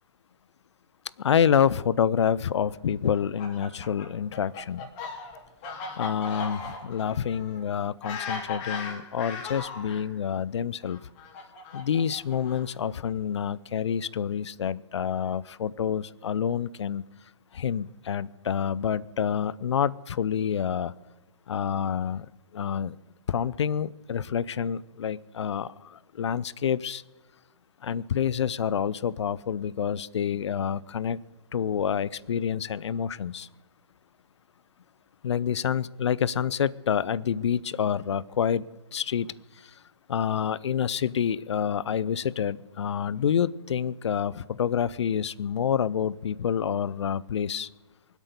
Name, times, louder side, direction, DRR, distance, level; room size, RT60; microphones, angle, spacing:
voice 1, 1.2-4.9 6.0-11.0 11.7-17.0 17.5-20.9 21.5-23.0 23.3-27.0 27.8-31.2 31.5-33.5 35.2-38.6 38.9-39.3 39.6-39.7 40.1-47.7, left 8 dB, 70° left, 0.6 m, -28 dB
Fowl, 3.1-10.0 10.8-12.9, left 4 dB, 35° left, 3.1 m, -38 dB
23.5 x 8.3 x 6.8 m
hypercardioid pair, 130°, 15 cm